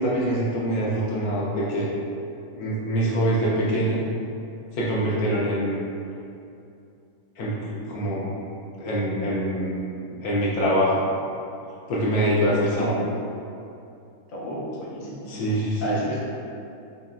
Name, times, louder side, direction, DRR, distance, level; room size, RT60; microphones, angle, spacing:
voice 1, 0.0-1.9 2.5-4.0 4.7-5.8 7.4-8.3 8.8-9.8 10.2-11.0 11.9-12.9 15.3-16.0, right 1 dB, 70° left, -5 dB, 1.1 m, -24 dB
voice 2, 14.3-15.3 15.8-16.2, right 1 dB, 45° left, -7 dB, 0.7 m, -31 dB
5.4 x 2.3 x 2.5 m, 2.6 s
omnidirectional pair, 1.7 m